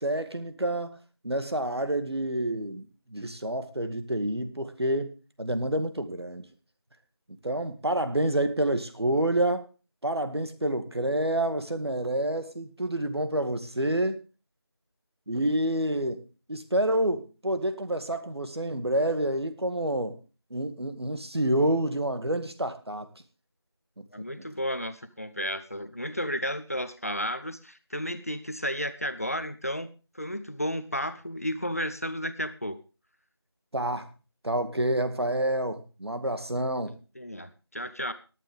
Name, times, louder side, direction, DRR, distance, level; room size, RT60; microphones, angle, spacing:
voice 1, 0.0-1.0 1.2-6.4 7.4-9.7 10.0-14.2 15.3-16.2 16.5-20.2 20.5-23.1 24.0-24.3 33.7-34.1 34.4-37.0, right 1 dB, 70° right, 9 dB, 2.0 m, -28 dB
voice 2, 24.1-29.9 30.1-32.8 37.1-38.1, equal, 35° left, 12 dB, 0.8 m, -33 dB
18.5 x 9.3 x 3.5 m, 0.33 s
figure-of-eight pair, 175°, 14 cm